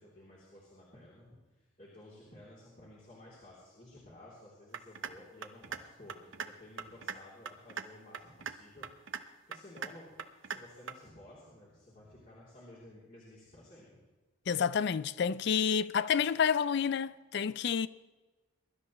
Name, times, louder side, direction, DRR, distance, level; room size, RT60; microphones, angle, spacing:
voice 1, 0.0-1.4 1.8-10.2 10.4-14.0, left 1 dB, 40° left, 3.2 m, -54 dB
sound 1, 4.7-5.1 5.4-5.8 6.1-6.5 6.8-7.2 7.5-7.8 8.1-8.6 8.8-9.2 9.5-9.9 10.2-10.6 10.9-11.0, right 7 dB, 65° right, 0.7 m, -39 dB
voice 2, 14.5-17.9, left 7 dB, 55° left, 0.4 m, -29 dB
22.0 x 12.5 x 3.1 m
head